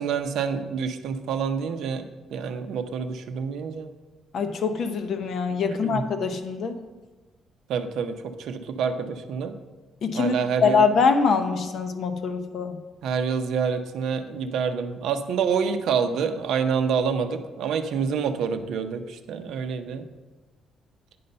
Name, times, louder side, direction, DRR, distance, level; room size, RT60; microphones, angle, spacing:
voice 1, 0.0-3.9 5.5-6.0 7.7-9.5 10.2-10.8 13.0-20.0, right 6 dB, 65° right, 8 dB, 0.6 m, -27 dB
voice 2, 4.3-6.8 10.0-10.3 10.6-12.8, left 5 dB, 45° left, 7 dB, 0.7 m, -23 dB
9.3 x 5.4 x 5.4 m, 1.2 s
cardioid pair, 170°, 0 cm